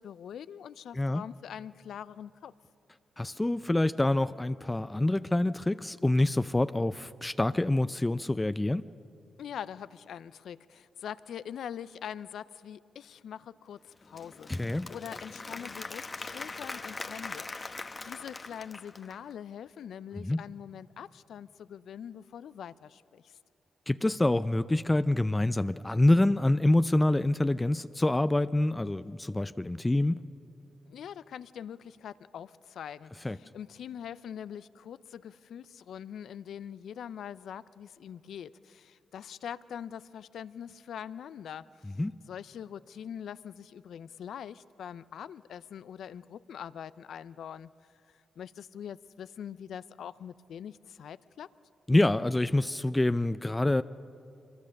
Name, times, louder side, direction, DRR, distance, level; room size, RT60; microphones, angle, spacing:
voice 1, 0.0-2.5 9.4-23.4 30.9-41.9 42.3-47.7 48.4-51.5, left 9 dB, 75° left, 17 dB, 0.5 m, -43 dB
voice 2, 3.2-8.8 14.5-14.9 20.2-20.4 23.9-30.2 33.2-33.4 42.0-42.1 51.9-53.8, left 1 dB, 20° left, 13 dB, 0.5 m, -26 dB
Applause / Crowd, 13.9-19.3, left 3 dB, 40° left, 1.0 m, -41 dB
25.0 x 22.5 x 6.5 m, 2.5 s
supercardioid pair, 50°, 0 cm